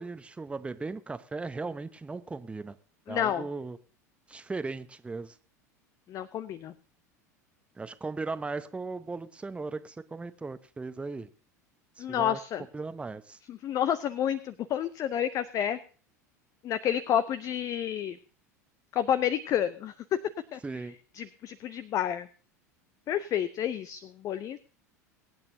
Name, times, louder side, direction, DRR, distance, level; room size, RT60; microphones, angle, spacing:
voice 1, 0.0-2.8 3.1-3.8 4.3-5.4 7.8-11.3 12.0-12.4 12.7-13.4 20.6-20.9, right 3 dB, 15° right, 12 dB, 0.9 m, -37 dB
voice 2, 3.1-3.4 6.1-6.7 12.0-12.6 13.5-15.8 16.6-18.2 18.9-19.9 20.5-20.6 21.1-22.3 23.1-24.6, left 10 dB, 40° left, 15 dB, 0.6 m, -29 dB
23.5 x 8.8 x 2.7 m, 0.40 s
figure-of-eight pair, 80°, 9 cm